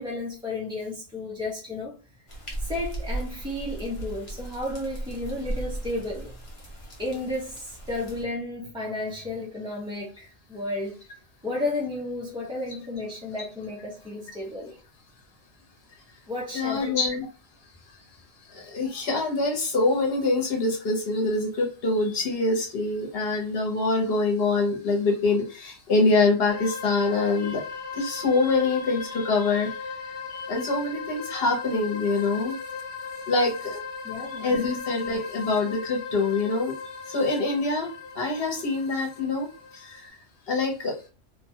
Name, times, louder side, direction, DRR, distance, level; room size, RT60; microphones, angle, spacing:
voice 1, 0.0-1.9 2.6-6.3 7.0-11.0 11.4-14.8 16.3-16.9 34.0-34.6, left 2 dB, 5° right, 0.3 m, -33 dB
sound 1, 2.3-8.2, right 1 dB, 30° left, 0.7 m, -36 dB
voice 2, 16.5-17.3 17.9-18.0 18.5-30.0 30.3-32.6 33.3-33.9 34.3-39.5 39.7-40.2 40.5-41.0, left 3 dB, 55° left, 1.0 m, -25 dB
sound 2, 26.5-40.1, left 5 dB, 80° left, 0.9 m, -38 dB
2.8 x 2.2 x 2.7 m
omnidirectional pair, 1.3 m